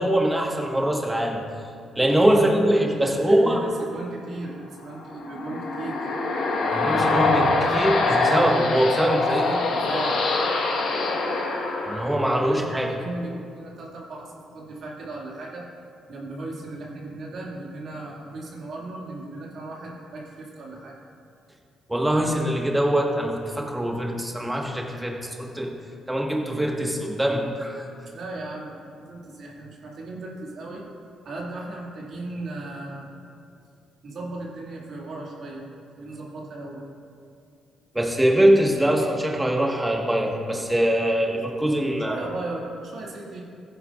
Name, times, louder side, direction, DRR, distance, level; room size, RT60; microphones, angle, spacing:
voice 1, 0.0-1.4 1.9-3.6 6.7-9.5 11.8-12.9 21.9-25.7 26.1-27.8 37.9-42.2, right 1 dB, 10° right, 0 dB, 1.6 m, -23 dB
voice 2, 2.3-6.1 9.4-10.2 12.3-15.7 16.1-21.0 28.1-30.9 31.2-33.1 34.0-35.6 36.0-36.8 42.0-43.4, right 2 dB, 60° right, -3 dB, 2.3 m, -36 dB
sound 1, 5.0-12.6, left 3 dB, 75° left, 1.4 m, -24 dB
15.5 x 10.0 x 2.5 m, 2.4 s
cardioid pair, 90°, 0 cm